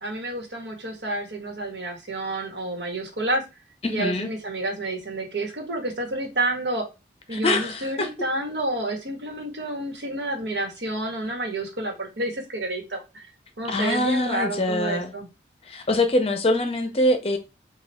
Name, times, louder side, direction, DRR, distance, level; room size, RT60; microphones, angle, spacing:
voice 1, 0.0-3.4 3.9-6.8 7.3-13.2 13.6-15.3, right 2 dB, 80° right, 1.2 m, -29 dB
voice 2, 3.8-4.3 7.3-8.1 13.7-15.1 15.6-17.4, left 1 dB, 35° left, 0.6 m, -24 dB
3.3 x 2.3 x 4.1 m
head